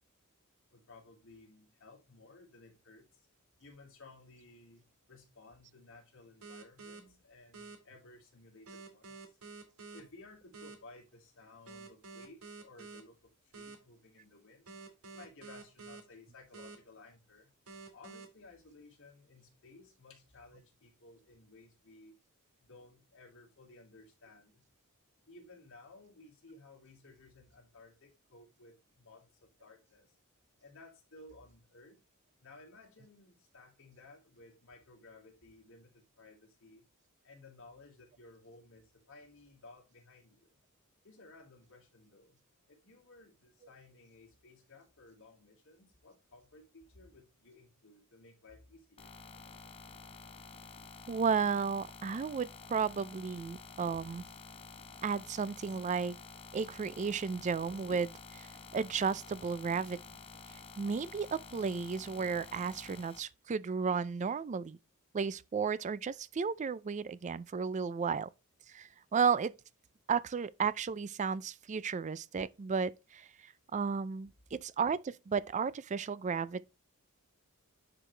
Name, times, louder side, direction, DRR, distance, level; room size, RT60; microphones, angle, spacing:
voice 1, 0.7-3.0 3.6-9.2 9.9-14.8 15.1-17.5 17.9-22.1 22.6-24.6 25.3-30.1 30.6-32.0 32.4-36.8 37.2-40.6 41.0-42.4 42.7-49.1, left 2 dB, 60° left, 2.6 m, -57 dB
sound 1, 6.4-7.0 7.5-7.8 8.7-10.0 10.5-10.7 11.7-13.0 13.5-13.8 14.7-16.0 16.5-16.8 17.7-18.2, right 4 dB, 85° right, 2.1 m, -48 dB
sound 2, 49.0-63.2, left 4 dB, 25° left, 0.9 m, -51 dB
voice 2, 51.1-54.2 55.0-56.2 56.5-60.0 60.8-64.8 65.1-68.3 68.7-69.5 70.1-73.3 73.7-76.7, right 5 dB, 35° right, 0.4 m, -33 dB
9.9 x 4.9 x 3.3 m
head